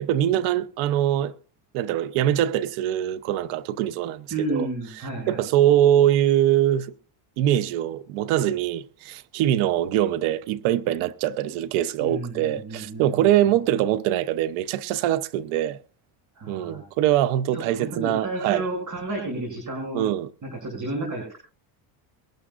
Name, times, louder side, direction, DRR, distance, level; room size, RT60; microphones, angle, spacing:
voice 1, 0.0-1.3 1.7-4.7 5.3-6.9 7.4-15.8 16.5-18.6 19.9-20.3, right 12 dB, 90° right, 0.9 m, -23 dB
voice 2, 4.3-5.4 12.0-13.5 16.3-16.8 17.5-20.0 20.4-21.4, right 2 dB, 40° right, 7.3 m, -32 dB
23.0 x 11.5 x 2.5 m
cardioid pair, 120°, 47 cm